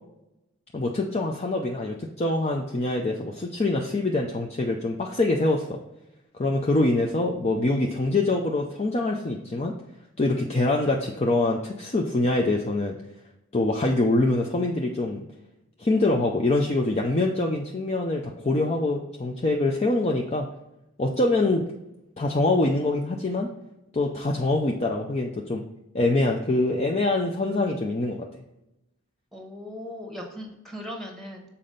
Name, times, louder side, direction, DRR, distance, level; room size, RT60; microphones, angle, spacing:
voice 1, 0.7-5.8 6.4-9.7 10.2-13.0 13.5-15.2 15.8-20.5 21.0-21.6 22.2-23.5 23.9-25.6 25.9-28.2, left 2 dB, 30° left, 0 dB, 0.6 m, -24 dB
voice 2, 29.3-31.4, left 1 dB, ahead, 2 dB, 1.2 m, -38 dB
7.0 x 4.3 x 3.9 m, 0.91 s
head